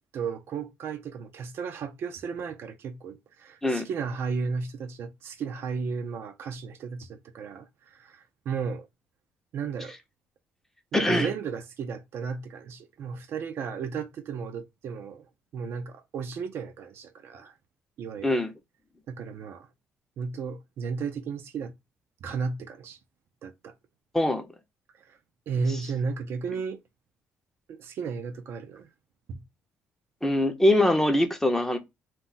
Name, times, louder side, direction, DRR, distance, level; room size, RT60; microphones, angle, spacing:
voice 1, 0.1-8.9 9.5-10.0 10.9-15.3 15.5-17.5 18.0-18.4 19.1-19.7 20.2-21.7 22.2-23.0 23.4-23.7 25.1-25.2 25.5-26.8 27.7-28.9 29.3-29.4, right 5 dB, 60° right, 0.4 m, -34 dB
voice 2, 10.9-11.3 18.2-18.5 24.1-24.4 30.2-31.8, left 1 dB, 10° left, 0.6 m, -23 dB
2.2 x 2.0 x 3.8 m
cardioid pair, 110°, 5 cm